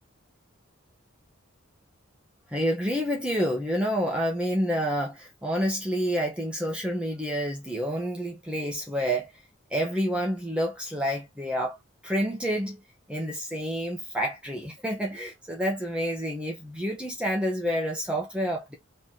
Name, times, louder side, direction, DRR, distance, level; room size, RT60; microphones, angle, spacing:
voice 1, 2.5-9.3 9.7-11.8 12.0-12.8 13.1-18.7, equal, 5° right, 0.9 m, -28 dB
3.1 x 3.0 x 4.0 m
head